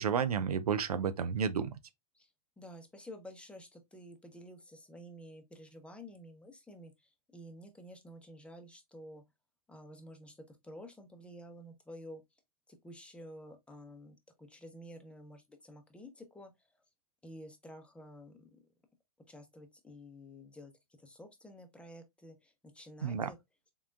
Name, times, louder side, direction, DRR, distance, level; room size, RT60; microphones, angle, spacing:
voice 1, 0.0-1.7 23.0-23.3, right 7 dB, 85° right, 0.5 m, -31 dB
voice 2, 2.6-6.9 7.3-9.2 9.7-12.2 12.8-16.5 17.2-18.6 19.3-20.7 21.0-23.4, equal, 5° left, 0.7 m, -51 dB
3.7 x 3.4 x 2.4 m
hypercardioid pair, 105°, 19 cm